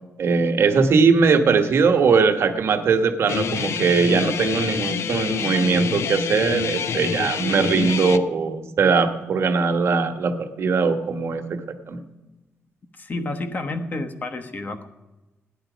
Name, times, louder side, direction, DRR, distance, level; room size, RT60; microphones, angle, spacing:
voice 1, 0.2-11.4 11.9-12.0, right 5 dB, 60° right, 7 dB, 1.3 m, -20 dB
Guitar, 3.3-8.2, left 7 dB, 65° left, 0.7 m, -27 dB
voice 2, 13.0-14.9, left 2 dB, 35° left, 7 dB, 1.2 m, -30 dB
15.5 x 10.5 x 5.1 m, 1.1 s
cardioid pair, 115°, 5 cm